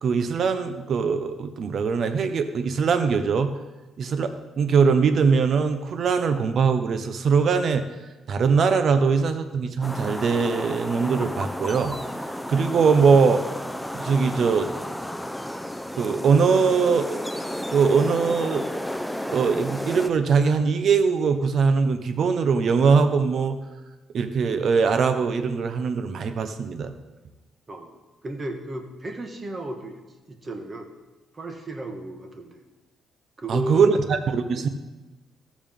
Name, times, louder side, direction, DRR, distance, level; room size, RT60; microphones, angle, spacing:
voice 1, 0.0-3.5 4.0-7.8 8.3-13.4 13.9-14.7 16.0-17.2 17.7-18.6 19.3-23.6 24.1-26.9 33.5-34.7, right 5 dB, 60° right, 9 dB, 0.7 m, -21 dB
sound 1, 9.8-20.1, equal, ahead, 0.5 m, -32 dB
voice 2, 27.7-30.0 30.3-30.9 31.3-32.6 33.4-34.0, right 1 dB, 30° right, 5 dB, 1.3 m, -34 dB
14.0 x 7.2 x 3.6 m, 1.1 s
cardioid pair, 90°, 0 cm